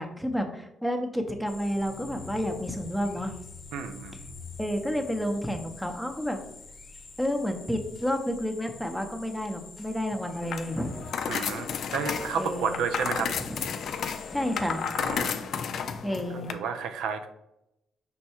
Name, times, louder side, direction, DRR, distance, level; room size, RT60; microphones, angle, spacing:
voice 1, 0.0-3.3 4.6-6.4 7.2-11.1 11.3-11.4 12.1-12.8 13.4-13.6 14.3-15.2 16.0-16.5, equal, ahead, 4 dB, 0.7 m, -30 dB
sound 1, 1.5-15.2, left 3 dB, 35° left, 0.8 m, -48 dB
sound 2, 1.7-7.7, left 3 dB, 65° right, 1.2 m, -48 dB
voice 2, 3.7-4.2 11.3-11.7 11.9-13.3 14.8-15.5 16.5-17.3, right 6 dB, 85° right, 8 dB, 0.4 m, -31 dB
sound 3, 10.4-16.5, left 7 dB, 65° left, 0.4 m, -32 dB
5.4 x 2.2 x 4.3 m, 0.86 s
cardioid pair, 90°, 0 cm